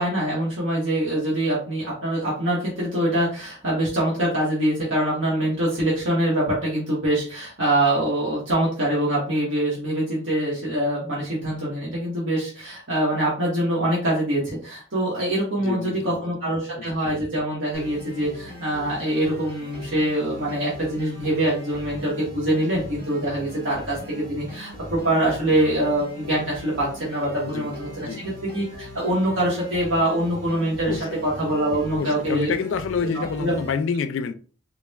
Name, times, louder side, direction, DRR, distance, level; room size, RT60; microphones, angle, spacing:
voice 1, 0.0-32.5 33.0-33.5, right 1 dB, 85° right, 1.4 m, -24 dB
voice 2, 15.6-16.3 16.8-16.9 27.4-27.7 28.0-28.2 30.9-31.2 31.9-34.4, left 5 dB, 85° left, 0.4 m, -28 dB
sound 1, 17.7-33.7, left 1 dB, 50° right, 0.9 m, -40 dB
3.8 x 3.1 x 2.3 m
head